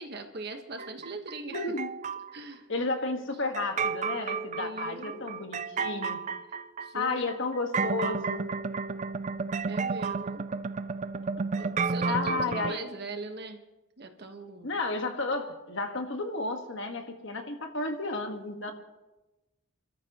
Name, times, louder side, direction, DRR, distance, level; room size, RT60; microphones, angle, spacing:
voice 1, 0.0-1.6 2.3-2.6 4.6-5.4 6.8-7.4 9.7-10.5 11.5-13.6 14.0-14.7, right 2 dB, 50° right, 5 dB, 1.3 m, -40 dB
sound 1, 0.8-2.4 3.5-12.7, right 5 dB, 35° right, 0.4 m, -32 dB
voice 2, 1.5-1.9 2.7-6.2 6.9-8.5 12.0-12.8 14.6-18.7, left 3 dB, 60° left, 5 dB, 1.6 m, -32 dB
29.0 x 13.5 x 3.0 m, 1.1 s
head